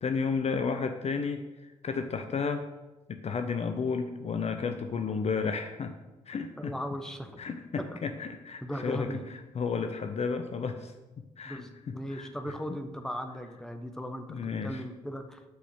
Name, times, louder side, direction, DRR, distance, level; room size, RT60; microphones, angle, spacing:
voice 1, 0.0-2.7 3.1-5.9 6.3-6.7 7.4-10.9 11.4-12.3 14.3-14.8, left 5 dB, 35° left, 7 dB, 0.6 m, -32 dB
voice 2, 6.6-7.4 8.6-9.2 11.4-15.4, equal, 5° left, 6 dB, 0.9 m, -38 dB
6.5 x 4.9 x 6.3 m, 1.1 s
figure-of-eight pair, 40°, 18 cm